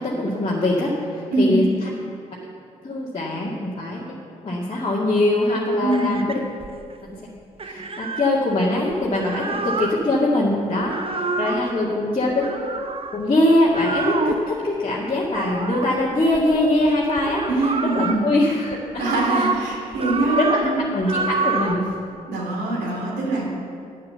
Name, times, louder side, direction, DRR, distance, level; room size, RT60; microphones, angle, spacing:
voice 1, 0.0-1.9 2.8-4.2 4.4-6.4 7.0-7.1 7.6-12.5 13.1-19.5 20.4-20.6 20.9-21.9, left 1 dB, 30° left, -5 dB, 2.2 m, -22 dB
voice 2, 1.3-1.6 5.8-6.2 11.6-11.7 17.5-18.3 19.0-20.7 22.3-23.5, right 2 dB, 60° right, -3 dB, 3.0 m, -23 dB
sound 1, 5.9-6.9 7.6-8.3 8.9-10.0 10.8-11.7 12.4-13.2 13.7-14.5 15.3-16.9 17.2-18.2 18.7-19.6 19.9-20.7 21.0-21.8, right 3 dB, 30° right, 1.0 m, -27 dB
11.0 x 9.0 x 7.0 m, 2.4 s
figure-of-eight pair, 45°, 19 cm